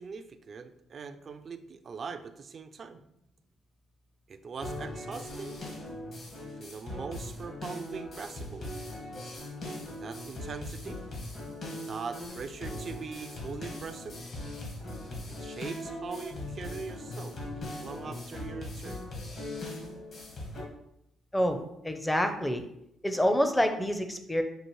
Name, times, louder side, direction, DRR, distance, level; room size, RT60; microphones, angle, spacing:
voice 1, 0.0-3.0 4.3-5.6 6.6-8.7 9.9-11.0 11.9-14.2 15.3-17.4 17.8-19.0, right 5 dB, 50° right, 10 dB, 0.4 m, -41 dB
sound 1, 4.6-20.6, left 1 dB, 55° left, 1.5 m, -40 dB
voice 2, 21.8-22.6 23.0-24.4, equal, 10° left, 6 dB, 0.5 m, -27 dB
6.4 x 2.4 x 3.1 m, 0.80 s
cardioid pair, 90°, 0 cm